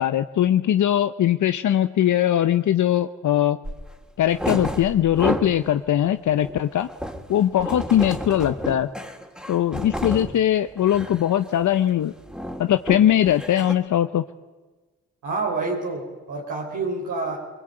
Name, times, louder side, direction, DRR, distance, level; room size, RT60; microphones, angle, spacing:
voice 1, 0.0-3.6 4.2-6.9 7.3-8.9 9.5-12.1 12.6-14.2, left 11 dB, 75° left, 10 dB, 0.8 m, -20 dB
sound 1, 3.6-3.8 4.2-5.7 6.0-10.4 10.8-11.2 11.5-11.8 12.0-13.7, equal, 5° right, 3.3 m, -31 dB
voice 2, 15.2-17.4, right 3 dB, 80° right, -2 dB, 3.9 m, -28 dB
23.5 x 21.5 x 8.9 m, 1.3 s
supercardioid pair, 50°, 30 cm